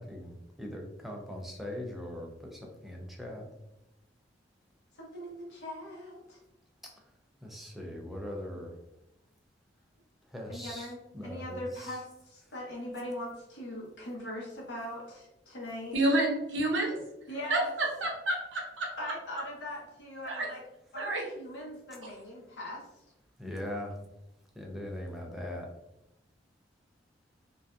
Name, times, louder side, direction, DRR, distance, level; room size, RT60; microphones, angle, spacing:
voice 1, 0.0-3.5 7.4-8.7 10.3-12.0 23.4-23.9 24.6-25.7, left 1 dB, ahead, 0 dB, 0.4 m, -40 dB
voice 2, 4.9-6.4 10.5-15.9 17.3-17.7 19.0-20.6 20.9-22.8, left 1 dB, 65° left, -4 dB, 0.9 m, -41 dB
voice 3, 15.9-17.0 17.5-17.6 18.0-18.9 20.2-20.5 20.9-21.2, right 1 dB, 80° right, -1 dB, 0.7 m, -29 dB
2.5 x 2.2 x 2.3 m, 0.89 s
head